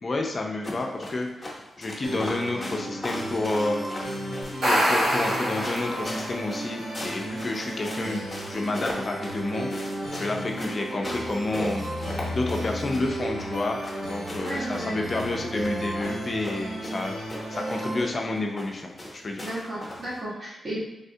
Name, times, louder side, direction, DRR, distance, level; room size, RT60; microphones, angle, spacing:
voice 1, 0.0-1.5 1.8-3.9 4.6-9.7 10.1-13.8 14.0-17.2 17.5-19.5, left 2 dB, 40° left, 1 dB, 0.3 m, -30 dB
sound 1, 0.6-20.2, left 1 dB, 20° left, 0.7 m, -39 dB
sound 2, 2.0-18.0, right 1 dB, 90° right, 1.0 m, -34 dB
sound 3, 4.4-6.4, equal, 70° right, 1.1 m, -25 dB
voice 2, 14.4-15.0 19.4-20.8, right 1 dB, 50° right, -5 dB, 1.0 m, -34 dB
3.4 x 2.2 x 2.6 m, 0.93 s
cardioid pair, 100°, 0 cm